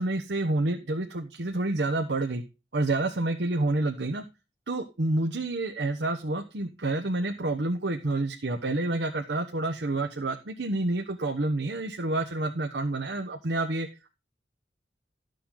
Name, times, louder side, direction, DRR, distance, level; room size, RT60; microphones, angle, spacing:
voice 1, 0.0-2.4 2.7-4.2 4.7-13.9, right 2 dB, 70° right, 4 dB, 1.0 m, -28 dB
13.5 x 6.8 x 3.8 m, 0.29 s
head